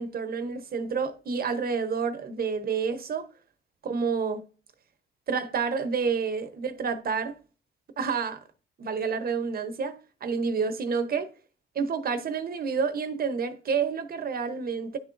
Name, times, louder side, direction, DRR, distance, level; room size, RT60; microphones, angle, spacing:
voice 1, 0.0-3.3 3.8-4.4 5.3-7.4 8.0-8.4 8.8-11.3 11.7-15.0, right 5 dB, 50° right, 0.8 m, -29 dB
10.0 x 3.8 x 2.5 m
cardioid pair, 90°, 20 cm